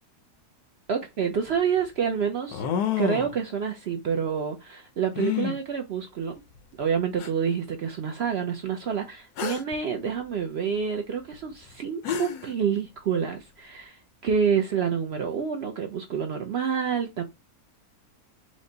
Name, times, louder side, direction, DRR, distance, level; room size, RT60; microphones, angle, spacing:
voice 1, 0.9-2.6 3.0-6.4 6.8-17.2, right 7 dB, 65° right, 0.6 m, -28 dB
sound 1, 1.0-1.1 2.5-3.4 5.2-5.6 6.6-6.7 7.2-7.3 9.4-9.8 11.7-11.8 12.0-12.5, left 8 dB, 90° left, 1.2 m, -28 dB
5.1 x 2.1 x 3.8 m
omnidirectional pair, 1.6 m